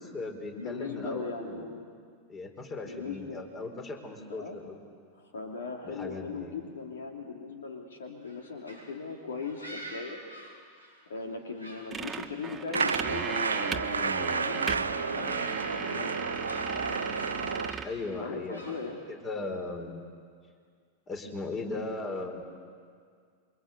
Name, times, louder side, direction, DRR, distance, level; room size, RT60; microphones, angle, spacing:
voice 1, 0.0-1.7 2.3-4.8 5.8-6.5 17.8-20.1 21.1-22.4, left 3 dB, 25° left, 4 dB, 4.5 m, -38 dB
voice 2, 0.6-1.8 2.8-3.4 4.3-4.6 5.2-10.2 11.1-14.8 15.1-15.4 15.9-16.1 16.8-17.0 18.2-19.0, left 4 dB, 65° left, 2 dB, 2.9 m, -39 dB
sound 1, 8.2-11.3 11.5-13.2 13.5-14.1 14.5-14.8 15.2-15.8 16.1-17.0 17.6-19.1, right 1 dB, 80° left, 7.6 m, -48 dB
sound 2, 11.9-17.9, right 5 dB, 15° right, 1.4 m, -36 dB
sound 3, 12.7-17.7, right 4 dB, 75° right, 0.6 m, -31 dB
27.5 x 24.5 x 8.3 m, 2.1 s
figure-of-eight pair, 90°, 0 cm